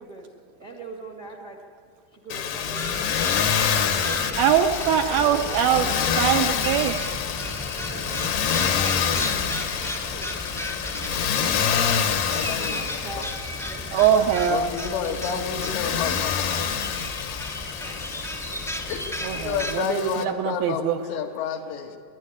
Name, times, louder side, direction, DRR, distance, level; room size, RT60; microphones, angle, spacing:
voice 1, 0.0-1.6 2.1-3.5 4.8-5.9 7.4-10.3 12.2-13.9 17.7-18.1, right 3 dB, 45° right, 0 dB, 0.9 m, -42 dB
Motor vehicle (road), 2.3-20.2, left 8 dB, 70° left, 2.1 m, -27 dB
sound 1, 2.6-19.8, equal, 5° left, 0.5 m, -35 dB
voice 2, 4.4-5.9 6.2-7.1 13.9-14.7 19.2-21.0, right 9 dB, 75° right, 4 dB, 2.2 m, -22 dB
voice 3, 12.3-12.8 13.2-13.3 14.5-16.7 18.9-19.0 19.3-22.0, left 7 dB, 90° left, 3 dB, 3.8 m, -30 dB
27.5 x 11.5 x 9.9 m, 2.2 s
omnidirectional pair, 5.0 m